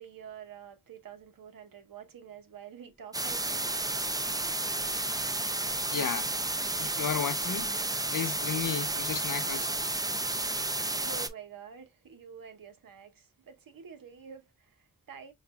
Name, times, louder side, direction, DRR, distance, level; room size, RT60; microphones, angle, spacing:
voice 1, 0.0-3.8 11.0-15.3, right 7 dB, 80° right, 1.0 m, -48 dB
sound 1, 3.1-11.3, right 2 dB, 10° right, 0.5 m, -31 dB
voice 2, 5.9-6.3 6.7-7.7 8.1-9.8, left 8 dB, 70° left, 0.7 m, -33 dB
5.9 x 2.5 x 2.3 m
wide cardioid pair, 75°, 33 cm